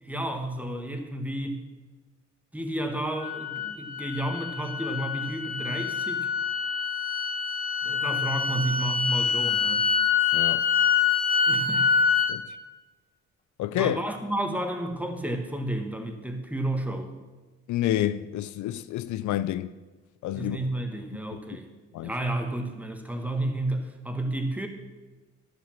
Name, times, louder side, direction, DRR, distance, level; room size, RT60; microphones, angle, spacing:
voice 1, 0.0-1.6 2.5-6.3 7.8-9.9 11.5-12.0 13.7-17.1 20.3-21.7 22.0-24.7, right 1 dB, 5° right, 1.7 m, -31 dB
sound 1, 3.2-12.4, left 6 dB, 30° left, 1.3 m, -26 dB
voice 2, 10.3-10.7 12.3-12.6 13.6-14.0 17.7-19.7 20.2-20.6 21.9-22.1, left 13 dB, 75° left, 0.5 m, -29 dB
11.0 x 7.7 x 7.4 m
cardioid pair, 90°, 30 cm